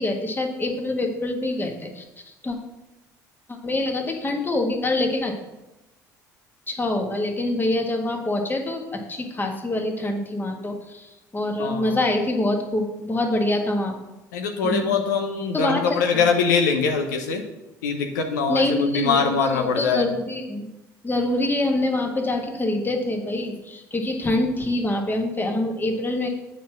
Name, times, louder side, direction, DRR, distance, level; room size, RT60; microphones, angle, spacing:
voice 1, 0.0-2.0 2.4-2.6 3.5-5.3 6.7-13.9 14.6-14.9 15.5-16.0 18.5-20.7 21.0-26.3, left 2 dB, 20° left, 3 dB, 1.6 m, -25 dB
voice 2, 11.6-12.0 14.3-17.5 17.8-20.1, left 5 dB, 75° left, 3 dB, 0.7 m, -23 dB
8.1 x 4.4 x 5.9 m, 0.99 s
hypercardioid pair, 60°, 10 cm